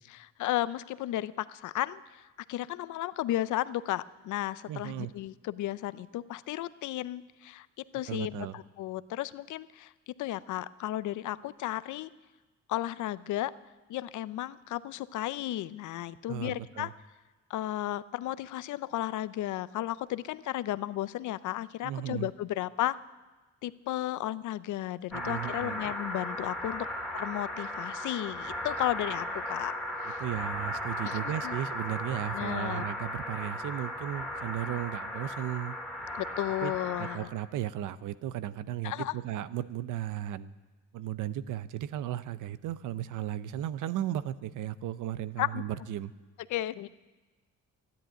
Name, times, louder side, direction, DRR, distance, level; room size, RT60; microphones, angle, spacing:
voice 1, 0.1-7.7 7.9-9.9 10.2-12.1 12.7-13.5 13.9-16.9 17.5-23.0 23.6-26.9 27.1-29.7 30.1-30.2 31.0-31.6 32.3-32.8 36.2-37.3 38.8-39.2 45.4-45.6 46.5-46.9, left 14 dB, 75° left, 16 dB, 0.6 m, -34 dB
voice 2, 4.7-5.1 8.1-8.6 16.3-16.9 21.8-22.3 25.1-25.8 30.2-35.8 36.6-36.7 37.0-40.5 40.9-46.1, right 12 dB, 85° right, 15 dB, 0.7 m, -35 dB
sound 1, 25.1-37.2, left 1 dB, ahead, 2.3 m, -36 dB
13.0 x 10.5 x 8.8 m, 1.2 s
cardioid pair, 90°, 30 cm